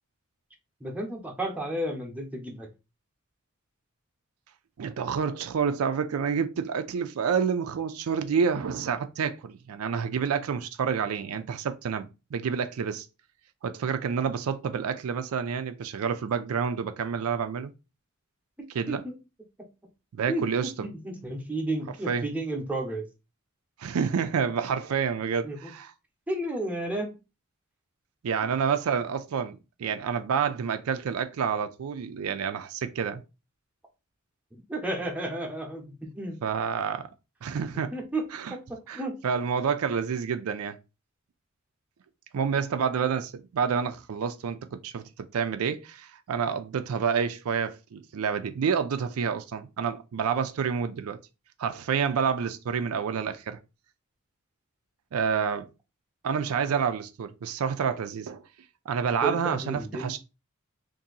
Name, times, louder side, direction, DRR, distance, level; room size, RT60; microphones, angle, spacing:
voice 1, 0.8-2.7 18.6-19.2 20.3-23.1 25.4-25.7 26.3-27.2 34.5-36.4 37.9-39.2 59.2-60.2, right 1 dB, 5° right, 0.7 m, -33 dB
voice 2, 4.8-13.1 13.6-17.7 18.7-19.0 20.1-20.9 22.1-22.3 23.8-25.9 28.2-33.2 36.4-37.1 37.4-37.9 38.3-38.5 38.9-40.8 42.3-51.2 51.6-53.6 55.1-55.7 56.2-58.4 58.9-60.2, right 6 dB, 80° right, 0.4 m, -28 dB
2.7 x 2.6 x 3.8 m
head